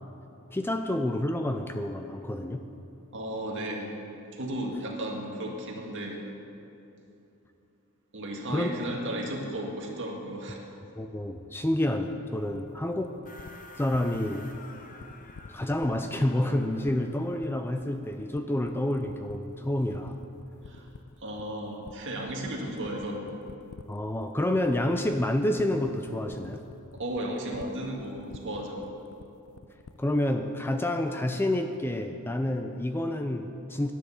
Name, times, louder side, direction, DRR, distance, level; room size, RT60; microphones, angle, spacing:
voice 1, 0.5-2.6 8.5-8.7 11.0-13.1 13.7-14.5 15.5-20.2 23.9-26.6 30.0-33.9, left 1 dB, 10° left, 6 dB, 0.4 m, -28 dB
voice 2, 3.1-4.0 4.3-6.2 8.1-10.6 20.6-20.9 21.2-23.3 26.9-28.9, right 1 dB, 55° right, 0 dB, 1.9 m, -34 dB
sound 1, 12.5-30.3, left 5 dB, 65° left, 0.5 m, -49 dB
sound 2, 13.2-17.8, left 2 dB, 35° left, 0.9 m, -50 dB
10.5 x 10.0 x 7.1 m, 2.8 s
head